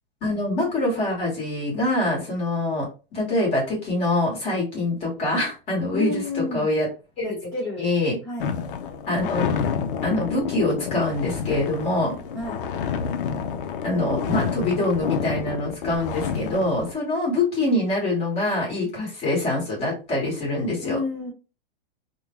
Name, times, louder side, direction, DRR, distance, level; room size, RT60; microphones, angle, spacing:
voice 1, 0.2-6.2 6.5-6.9 7.2-7.3 7.8-8.2 9.1-9.6 10.0-12.1 13.8-21.0, left 2 dB, 20° left, -4 dB, 1.4 m, -24 dB
voice 2, 5.9-6.7 7.2-7.9 8.2-8.5 12.3-12.6 20.8-21.3, left 3 dB, 10° right, -5 dB, 1.2 m, -30 dB
sound 1, 8.4-16.9, left 7 dB, 65° left, 0.6 m, -29 dB
3.6 x 2.2 x 2.9 m, 0.31 s
supercardioid pair, 165°, 29 cm